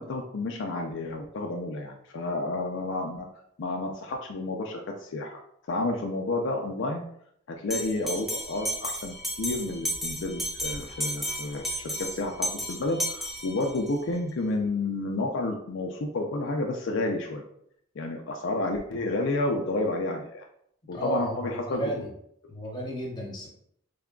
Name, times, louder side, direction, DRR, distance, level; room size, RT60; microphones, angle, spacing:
voice 1, 0.0-3.2 3.6-5.4 5.7-7.0 7.5-17.4 18.0-20.4 20.9-21.8, left 2 dB, 65° left, 1 dB, 0.4 m, -30 dB
Bell, 7.7-13.9, equal, ahead, 0.5 m, -33 dB
voice 2, 20.9-22.1 22.5-23.5, right 1 dB, 20° left, -2 dB, 1.0 m, -33 dB
3.4 x 2.3 x 3.7 m, 0.70 s
head